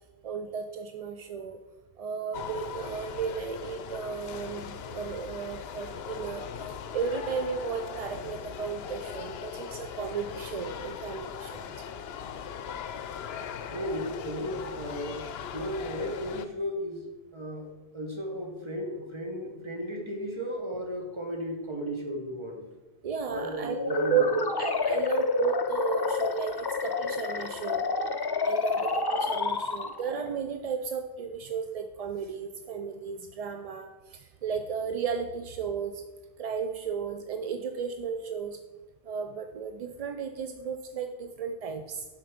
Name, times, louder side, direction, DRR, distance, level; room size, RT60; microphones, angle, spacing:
voice 1, 0.2-1.6 2.0-11.7 23.0-24.3 24.6-27.9 28.4-36.0 36.4-38.6 39.0-42.1, right 6 dB, 50° right, 6 dB, 0.4 m, -34 dB
sound 1, 2.3-16.5, left 7 dB, 75° left, 0.8 m, -39 dB
voice 2, 13.7-15.2 15.5-17.0 17.3-17.7 17.9-22.6 23.3-24.2, equal, 30° right, 1 dB, 1.5 m, -35 dB
sound 2, 23.7-30.2, left 4 dB, 35° left, 0.4 m, -29 dB
7.7 x 5.9 x 5.0 m, 1.1 s
omnidirectional pair, 1.1 m